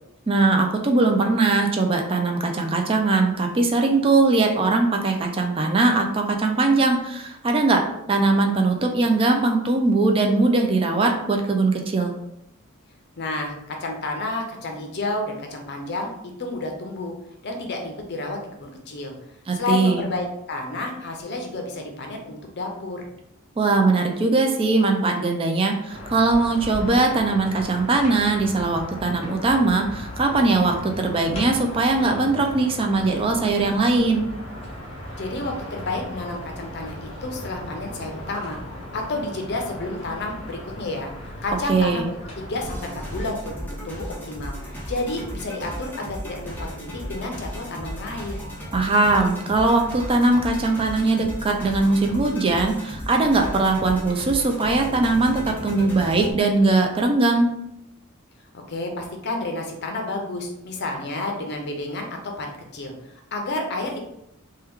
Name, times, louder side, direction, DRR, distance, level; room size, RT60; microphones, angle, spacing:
voice 1, 0.3-7.8 8.1-12.1 19.5-20.0 23.6-34.3 41.7-42.1 48.7-57.5, right 3 dB, 25° right, 3 dB, 0.3 m, -20 dB
voice 2, 13.2-16.1 16.4-17.1 17.4-19.1 19.5-23.1 35.2-38.6 38.9-41.1 41.4-48.4 58.7-64.0, left 2 dB, 55° left, 3 dB, 0.6 m, -30 dB
sound 1, 25.9-43.3, equal, 30° left, 1.0 m, -37 dB
sound 2, 42.6-56.3, equal, 10° left, 0.6 m, -35 dB
2.9 x 2.2 x 3.5 m, 0.80 s
head